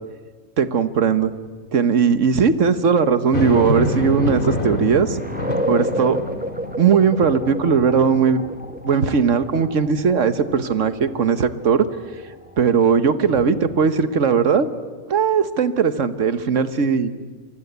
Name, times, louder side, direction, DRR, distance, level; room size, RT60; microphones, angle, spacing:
voice 1, 0.6-1.3 1.7-5.2 5.7-6.2 6.8-8.4 8.8-11.8 12.6-14.7 15.1-17.1, right 6 dB, 75° right, 12 dB, 1.5 m, -18 dB
sound 1, 2.8-14.2, equal, 10° right, 1.0 m, -33 dB
sound 2, 3.3-8.9 9.4-9.5 13.3-14.4, left 1 dB, 45° left, 2.5 m, -28 dB
27.5 x 23.5 x 8.1 m, 1.5 s
omnidirectional pair, 1.3 m